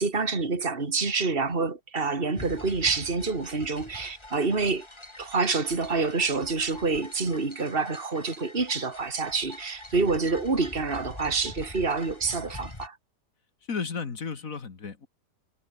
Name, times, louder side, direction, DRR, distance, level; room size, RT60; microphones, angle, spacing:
voice 1, 0.0-4.9 5.2-13.0, right 4 dB, 30° right, 3.1 m, -27 dB
sound 1, 2.4-12.9, left 2 dB, 15° left, 2.5 m, -44 dB
voice 2, 13.7-15.1, left 5 dB, 50° left, 2.4 m, -33 dB
omnidirectional pair, 1.8 m